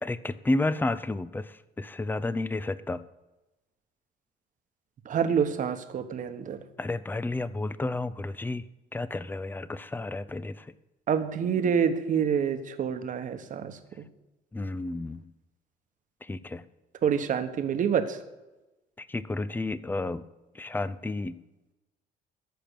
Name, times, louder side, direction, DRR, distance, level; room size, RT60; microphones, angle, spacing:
voice 1, 0.0-3.0 6.8-8.6 8.9-10.7 14.5-15.3 16.2-16.6 19.0-20.3 20.5-21.4, left 2 dB, 10° left, 15 dB, 0.5 m, -31 dB
voice 2, 5.0-6.6 11.1-13.8 17.0-18.2, right 7 dB, 50° right, 8 dB, 1.2 m, -27 dB
14.0 x 5.9 x 6.8 m, 1.0 s
cardioid pair, 110°, 17 cm